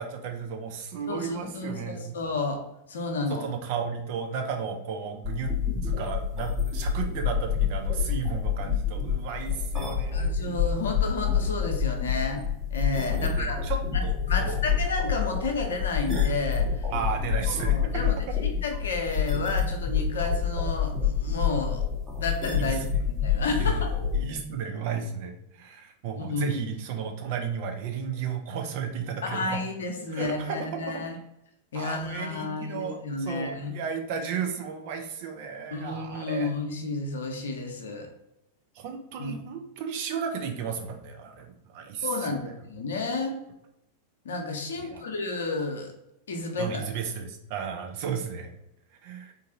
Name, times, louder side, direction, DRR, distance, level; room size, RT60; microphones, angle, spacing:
voice 1, 0.0-2.2 3.3-5.5 5.8-10.3 13.1-14.6 16.9-18.1 22.6-22.8 23.6-23.8 24.1-29.6 30.1-31.0 31.7-36.5 38.7-42.4 44.8-45.0 46.6-48.5 49.0-49.3, right 6 dB, 50° right, 3 dB, 0.6 m, -34 dB
voice 2, 1.1-2.6 2.9-3.5 10.1-12.4 12.7-13.7 13.9-16.9 17.5-18.1 18.6-21.8 22.2-22.8 23.1-23.9 26.2-26.6 29.2-31.2 31.7-33.8 35.7-38.1 39.2-39.4 42.0-43.4 44.2-45.9 46.3-46.8, left 3 dB, 65° left, 4 dB, 0.6 m, -31 dB
sound 1, 5.2-24.2, left 7 dB, 10° right, 0.9 m, -27 dB
3.9 x 2.5 x 2.7 m, 0.86 s
figure-of-eight pair, 90°, 0 cm